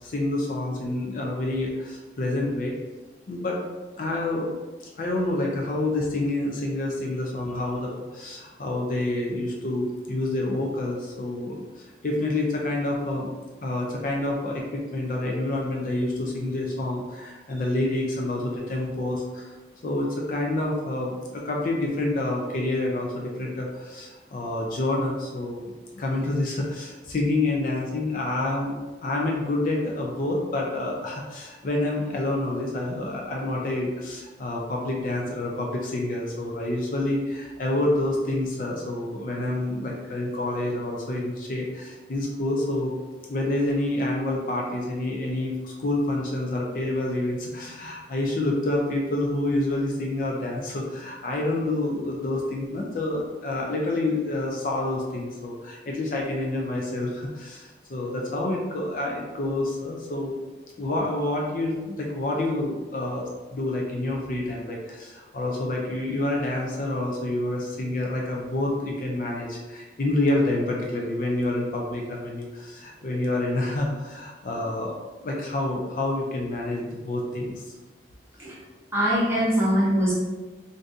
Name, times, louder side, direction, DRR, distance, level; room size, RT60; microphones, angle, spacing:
voice 1, 0.0-2.7 3.3-3.6 4.0-4.5 4.8-13.3 13.6-19.5 19.8-25.6 26.0-42.9 43.3-60.3 60.8-77.6, left 2 dB, 45° left, -1 dB, 0.4 m, -28 dB
voice 2, 78.9-80.1, equal, 15° right, -8 dB, 0.9 m, -22 dB
2.6 x 2.6 x 3.4 m, 1.2 s
head